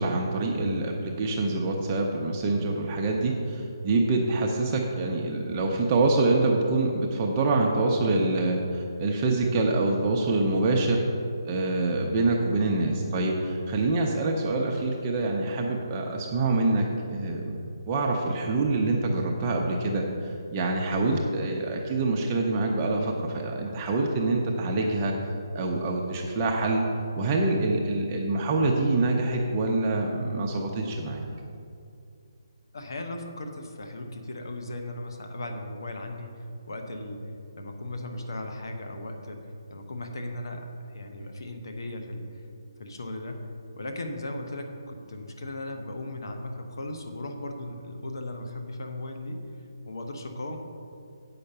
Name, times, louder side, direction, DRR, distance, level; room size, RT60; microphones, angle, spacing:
voice 1, 0.0-11.0 11.4-16.8 17.1-17.5 17.9-25.1 25.5-26.8 27.1-31.2, right 2 dB, 15° right, -1 dB, 0.6 m, -25 dB
voice 2, 32.7-37.2 37.5-39.4 39.7-42.3 42.8-43.5 43.8-49.4 49.9-50.6, left 1 dB, 65° left, 4 dB, 1.1 m, -37 dB
8.3 x 5.8 x 6.7 m, 2.4 s
hypercardioid pair, 175°, 2 cm